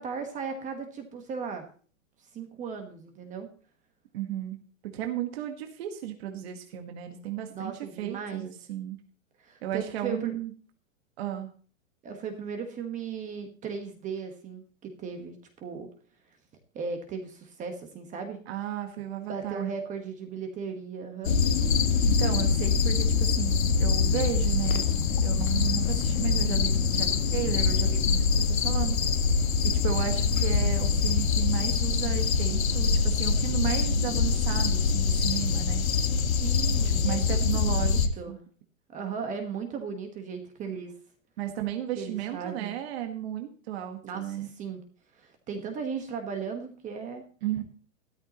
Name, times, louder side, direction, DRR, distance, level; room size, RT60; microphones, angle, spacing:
voice 1, 0.0-1.6 2.3-3.5 7.5-8.5 9.4-10.4 12.0-15.9 16.7-18.4 19.3-21.4 36.4-38.4 38.9-40.9 42.0-42.7 44.0-44.8 45.1-47.2, right 5 dB, 20° right, 5 dB, 1.4 m, -36 dB
voice 2, 4.1-4.6 4.9-9.0 9.6-10.5 11.2-11.5 18.5-19.7 22.0-24.8 25.2-29.0 29.8-35.8 36.7-38.4 41.4-44.5 47.4-47.6, right 11 dB, 50° right, 5 dB, 1.6 m, -34 dB
sound 1, 21.2-38.1, left 5 dB, 80° left, 1.7 m, -24 dB
13.5 x 13.0 x 3.0 m, 0.42 s
hypercardioid pair, 150°, 40 cm